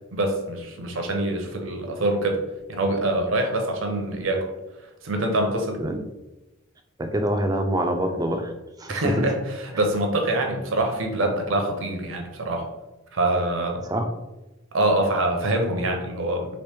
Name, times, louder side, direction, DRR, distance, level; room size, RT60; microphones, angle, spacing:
voice 1, 0.1-2.4 2.7-4.5 5.0-5.8 8.9-12.7 13.1-13.8 14.7-16.5, right 1 dB, 65° right, 3 dB, 0.7 m, -25 dB
voice 2, 7.0-8.5 8.8-9.3 13.8-14.1, right 1 dB, 15° right, 5 dB, 0.3 m, -25 dB
3.0 x 2.9 x 3.4 m, 1.0 s
head